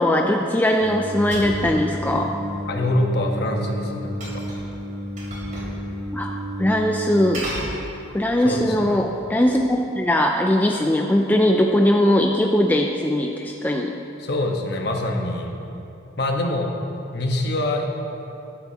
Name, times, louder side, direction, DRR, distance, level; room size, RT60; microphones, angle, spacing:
voice 1, 0.0-2.3 6.1-7.5 8.1-13.9, left 1 dB, 10° left, 2 dB, 0.3 m, -20 dB
Singing, 0.8-7.3, equal, 75° right, 2.3 m, -32 dB
sound 1, 1.3-1.7 4.2-4.7 5.2-5.8 6.1-6.2 7.3-8.3 8.9-9.7, right 1 dB, 40° right, 2.8 m, -34 dB
voice 2, 2.7-4.4 8.4-9.0 14.2-15.5 16.2-16.7 17.1-17.8, left 1 dB, 55° left, 1 dB, 1.2 m, -24 dB
12.5 x 12.0 x 2.9 m, 2.8 s
head